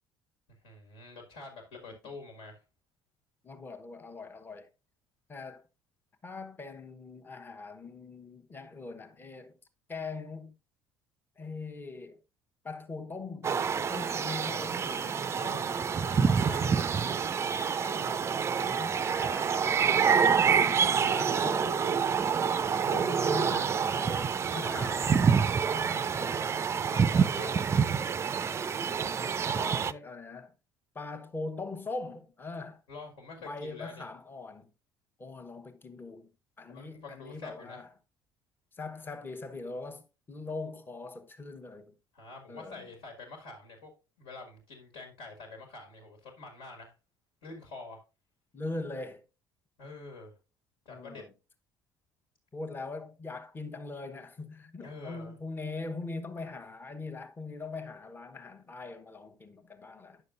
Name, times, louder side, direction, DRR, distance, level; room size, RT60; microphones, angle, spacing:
voice 1, 0.6-2.6 15.4-15.7 16.0-16.9 25.9-26.2 26.9-27.7 32.9-34.0 36.7-37.8 42.1-43.9 44.2-46.9 47.4-48.0 49.8-50.3 50.9-51.2 54.8-55.4, left 3 dB, 65° left, 2.0 m, -46 dB
voice 2, 3.4-4.7 5.3-5.6 6.2-9.6 9.9-10.5 11.4-12.2 12.6-16.1 17.8-18.3 18.6-20.0 20.5-22.0 22.9-25.2 25.7-26.6 29.6-30.5 30.9-32.8 33.4-34.7 35.2-36.3 36.6-37.9 38.7-41.9 42.5-42.9 48.5-49.2 50.9-51.3 52.5-60.2, left 3 dB, 20° left, 1.0 m, -41 dB
sound 1, 13.4-29.9, right 6 dB, 25° right, 0.4 m, -27 dB
10.0 x 6.5 x 2.5 m
figure-of-eight pair, 55°, 10 cm